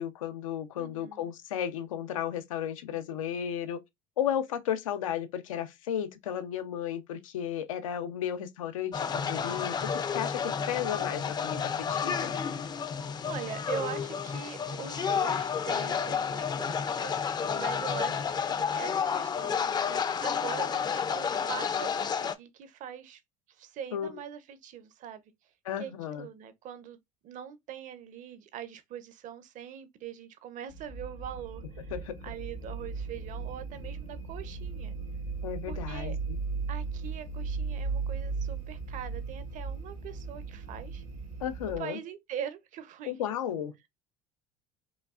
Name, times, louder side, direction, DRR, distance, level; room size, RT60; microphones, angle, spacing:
voice 1, 0.0-3.8 4.2-12.4 23.9-24.1 25.6-26.3 31.9-32.2 35.4-36.4 41.4-42.0 43.1-43.9, left 9 dB, 90° left, 0.7 m, -34 dB
voice 2, 0.8-1.3 13.2-23.2 23.5-25.3 25.8-27.0 27.2-31.9 32.2-35.0 35.7-36.2 36.7-41.0 41.8-43.3, right 9 dB, 50° right, 0.8 m, -42 dB
sound 1, 8.9-22.3, left 7 dB, 25° left, 0.5 m, -31 dB
sound 2, 30.7-41.8, right 4 dB, 75° right, 1.3 m, -37 dB
5.1 x 2.4 x 2.4 m
hypercardioid pair, 85°, 17 cm